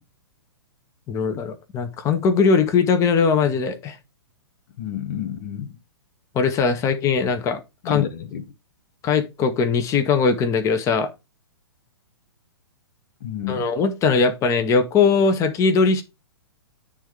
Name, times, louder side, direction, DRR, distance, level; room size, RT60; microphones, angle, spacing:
voice 1, 1.1-4.0 6.3-8.0 9.0-11.1 13.5-16.0, left 5 dB, 20° left, 1.0 m, -20 dB
voice 2, 4.8-5.8 7.8-8.4 13.2-13.6, left 9 dB, 45° left, 0.9 m, -30 dB
8.8 x 3.6 x 4.8 m
figure-of-eight pair, 115°, 14 cm